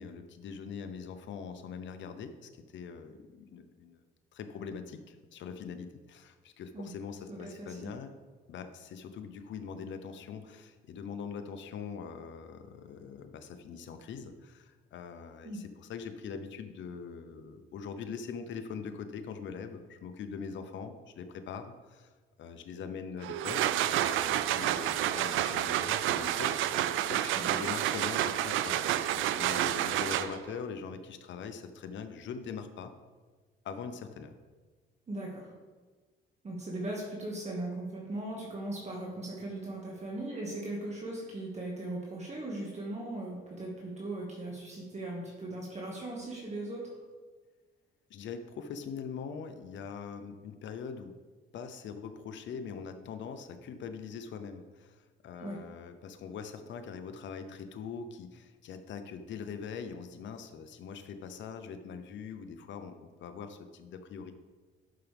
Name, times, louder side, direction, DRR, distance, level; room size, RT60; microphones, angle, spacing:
voice 1, 0.0-4.0 4.3-8.2 8.5-22.1 22.4-23.7 24.0-32.9 33.6-34.3 48.1-51.1 51.5-64.3, left 6 dB, 70° left, 8 dB, 0.8 m, -42 dB
voice 2, 7.3-7.9 15.4-15.6 27.3-27.5 35.1-35.5 36.4-47.0 55.4-55.6, right 2 dB, 35° right, -3 dB, 1.9 m, -38 dB
sound 1, 23.2-30.6, right 12 dB, 85° right, 0.4 m, -29 dB
11.5 x 5.9 x 3.5 m, 1.4 s
cardioid pair, 90°, 20 cm